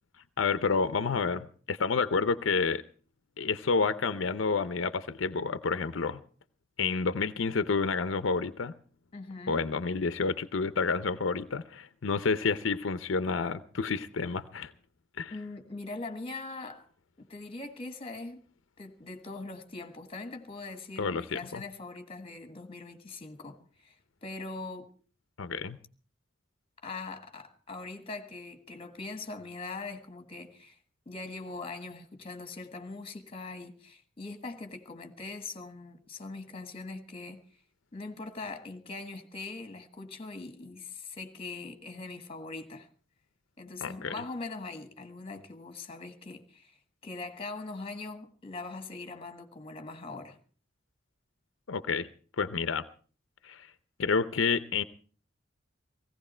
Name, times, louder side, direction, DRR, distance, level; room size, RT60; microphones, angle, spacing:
voice 1, 0.4-2.8 3.4-6.2 6.8-8.7 9.5-14.7 15.2-15.3 21.0-21.6 25.4-25.8 43.8-44.1 51.7-52.1 52.4-52.8 53.4-53.7 54.0-54.8, left 4 dB, 85° left, 0.6 m, -29 dB
voice 2, 9.1-9.6 15.3-16.9 17.2-18.4 18.8-23.6 23.8-24.9 26.8-30.8 31.0-37.4 37.9-42.9 43.6-46.8 47.0-50.4, left 3 dB, 30° left, 1.5 m, -41 dB
17.0 x 16.0 x 4.4 m
head